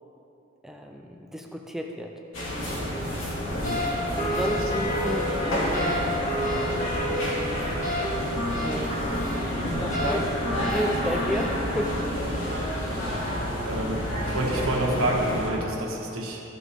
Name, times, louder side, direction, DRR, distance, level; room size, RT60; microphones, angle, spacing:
voice 1, 0.6-2.1 4.2-5.9 8.5-8.9 9.8-10.3 10.7-12.0, equal, ahead, 1 dB, 0.5 m, -32 dB
sound 1, 2.3-15.5, equal, 65° left, 2.4 m, -29 dB
voice 2, 3.5-3.9 4.4-4.6 13.0-13.1 13.6-16.4, right 1 dB, 75° right, -2 dB, 1.5 m, -29 dB
sound 2, 3.6-12.0, equal, 35° left, 1.7 m, -30 dB
14.0 x 7.1 x 3.6 m, 2.8 s
head